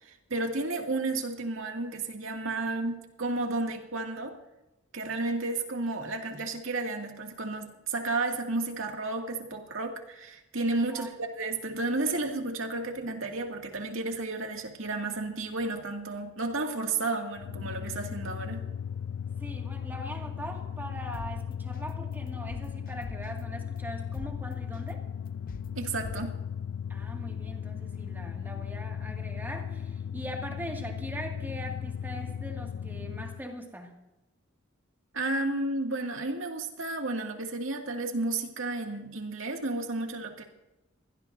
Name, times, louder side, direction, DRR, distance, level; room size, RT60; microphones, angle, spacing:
voice 1, 0.0-4.3 4.9-18.7 25.8-26.4 35.1-40.4, right 2 dB, 75° right, 2 dB, 2.3 m, -32 dB
sound 1, 17.4-33.5, left 8 dB, 80° left, 0.4 m, -37 dB
voice 2, 19.4-25.0 26.9-34.0, equal, 10° right, 1 dB, 2.1 m, -41 dB
Contact Drum Loop, 21.1-21.3 21.7-21.9 22.3-23.4 23.8-23.9 24.1-24.3 24.7-24.9 25.3-25.7 26.0-26.2, left 2 dB, 45° left, 0.7 m, -43 dB
23.5 x 16.5 x 2.7 m, 0.98 s
head